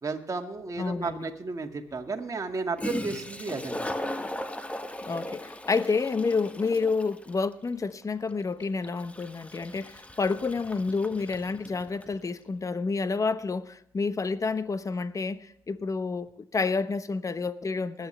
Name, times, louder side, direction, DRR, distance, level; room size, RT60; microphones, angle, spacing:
voice 1, 0.0-3.8, right 4 dB, 35° right, 2.1 m, -33 dB
voice 2, 0.8-1.3 5.1-18.1, left 4 dB, 30° left, 1.0 m, -29 dB
Toilet flush, 0.8-0.9 2.5-2.6 2.8-12.2, left 1 dB, 15° left, 1.5 m, -38 dB
20.0 x 9.3 x 3.3 m
hypercardioid pair, 50°, 10 cm